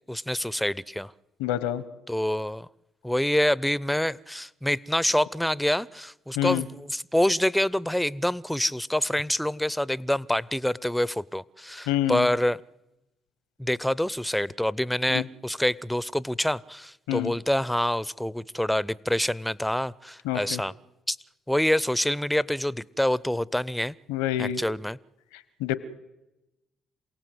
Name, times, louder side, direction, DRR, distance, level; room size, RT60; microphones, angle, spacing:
voice 1, 0.1-1.1 2.1-2.7 3.0-12.6 13.6-20.7 21.1-21.2 21.5-23.9 24.4-25.0, left 1 dB, 5° left, 21 dB, 0.7 m, -26 dB
voice 2, 1.4-1.8 6.4-6.7 11.9-12.3 15.1-15.2 17.1-17.3 20.2-20.6 24.1-24.6 25.3-25.8, left 13 dB, 90° left, 16 dB, 1.1 m, -27 dB
27.5 x 17.5 x 8.0 m, 0.97 s
supercardioid pair, 55°, 0 cm